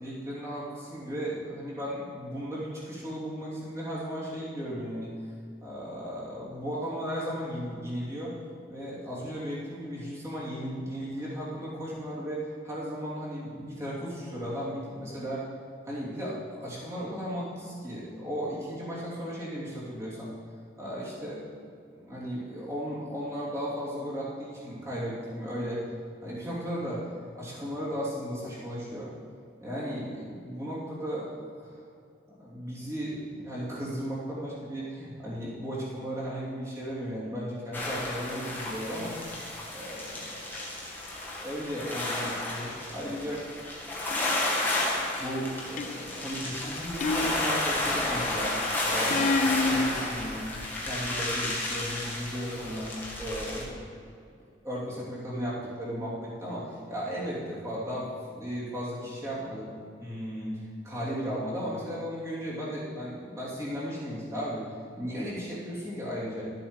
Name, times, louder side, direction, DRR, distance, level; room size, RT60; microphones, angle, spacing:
voice 1, 0.0-5.1 5.6-8.3 8.7-15.5 15.8-20.3 20.8-21.4 21.9-25.8 26.2-27.1 27.3-29.1 29.6-31.3 31.6-31.7 32.4-39.1 39.7-40.7 41.2-43.4 44.7-48.6 48.9-50.5 50.8-52.9 53.2-54.0 54.6-59.7 60.0-64.6 65.0-66.4, equal, 15° right, -8 dB, 3.0 m, -35 dB
sound 1, 37.7-53.6, left 1 dB, 10° left, 1.7 m, -32 dB
sound 2, 45.8-46.3 47.0-47.9 49.1-49.9, left 3 dB, 40° left, 0.3 m, -28 dB
12.5 x 7.7 x 5.3 m, 2.4 s
head